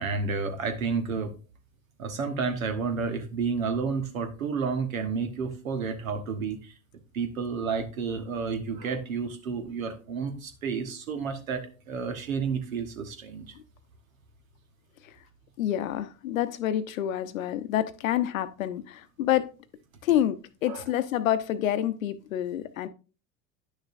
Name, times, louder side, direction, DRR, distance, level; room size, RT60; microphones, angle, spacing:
voice 1, 0.0-1.3 2.0-6.7 7.1-13.5 20.6-20.8, right 5 dB, 80° right, 1.3 m, -31 dB
voice 2, 15.6-19.5 20.0-22.9, left 11 dB, 75° left, 0.8 m, -28 dB
9.9 x 6.4 x 2.5 m
hypercardioid pair, 75°, 40 cm